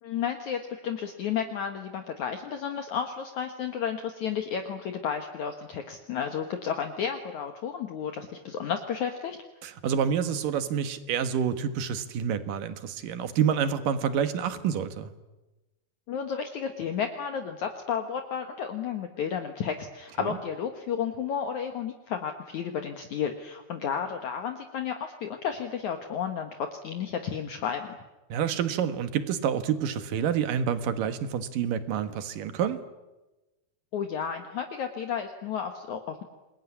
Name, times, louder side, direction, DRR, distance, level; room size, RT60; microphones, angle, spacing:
voice 1, 0.0-9.4 16.1-28.0 33.9-36.2, left 7 dB, 60° left, 6 dB, 2.5 m, -32 dB
voice 2, 9.6-15.1 20.3-20.4 28.3-32.8, right 8 dB, 65° right, 11 dB, 3.0 m, -28 dB
27.5 x 22.0 x 9.8 m, 1.1 s
omnidirectional pair, 4.4 m